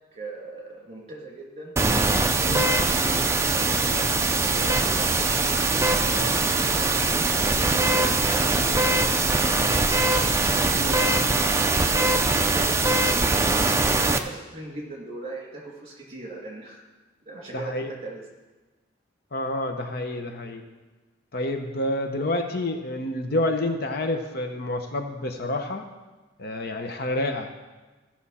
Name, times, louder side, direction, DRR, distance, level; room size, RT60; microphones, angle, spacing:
voice 1, 0.1-1.7 2.2-5.3 6.0-10.0 10.6-11.5 11.8-12.7 13.8-16.8 17.2-18.2, right 2 dB, 35° right, -2 dB, 2.7 m, -40 dB
sound 1, 1.8-14.2, right 3 dB, 15° right, 0.4 m, -22 dB
voice 2, 17.5-17.9 19.3-20.6 21.3-25.8 26.4-27.7, left 1 dB, 55° left, 5 dB, 0.8 m, -28 dB
15.5 x 6.0 x 4.2 m, 1.2 s
head